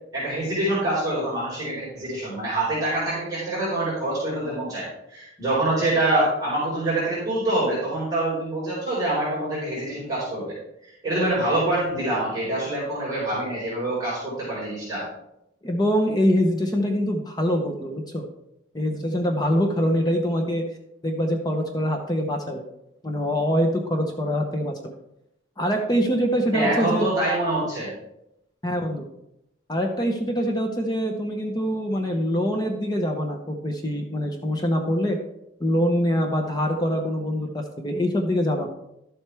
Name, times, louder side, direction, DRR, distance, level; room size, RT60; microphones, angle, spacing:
voice 1, 0.1-10.6 10.8-15.1 26.5-27.9, right 1 dB, 20° right, -9 dB, 4.2 m, -25 dB
voice 2, 15.6-18.3 18.7-20.6 21.0-22.6 23.0-25.0 25.6-27.1 28.6-29.1 29.7-35.2 35.6-38.7, equal, 20° left, 3 dB, 0.8 m, -24 dB
11.5 x 7.5 x 3.4 m, 0.82 s
head